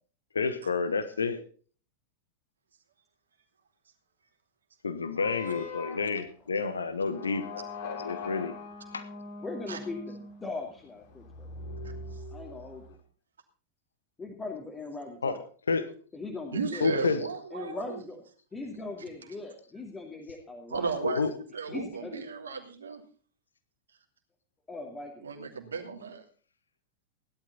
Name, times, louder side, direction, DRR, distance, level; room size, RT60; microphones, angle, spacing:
voice 1, 0.3-1.4 4.8-8.5 8.9-9.0 15.2-15.4 15.7-15.9 16.8-17.2 21.0-21.3, left 4 dB, 75° left, 11 dB, 1.2 m, -29 dB
sound 1, 5.1-12.9, left 3 dB, 50° left, 3.0 m, -42 dB
voice 2, 9.4-11.5 12.3-13.0 14.2-15.4 16.1-16.9 17.5-18.2 18.5-20.9 21.7-22.2 24.7-25.3, left 3 dB, 15° left, 1 dB, 2.5 m, -40 dB
voice 3, 16.5-18.0 20.7-21.2 21.5-23.0 25.2-26.2, right 4 dB, 70° right, 4 dB, 2.8 m, -34 dB
16.5 x 12.0 x 4.1 m, 0.40 s
figure-of-eight pair, 90°, 0 cm